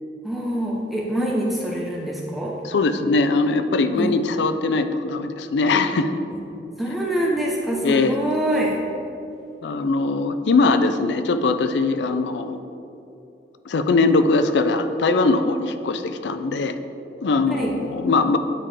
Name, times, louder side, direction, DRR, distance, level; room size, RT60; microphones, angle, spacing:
voice 1, 0.2-2.5 3.9-4.1 6.8-8.8 17.5-17.7, right 1 dB, ahead, -4 dB, 0.6 m, -25 dB
voice 2, 2.6-6.1 7.8-8.1 9.6-12.6 13.7-16.8 17.2-18.4, left 3 dB, 85° left, 9 dB, 0.4 m, -21 dB
9.6 x 3.7 x 3.3 m, 2.8 s
head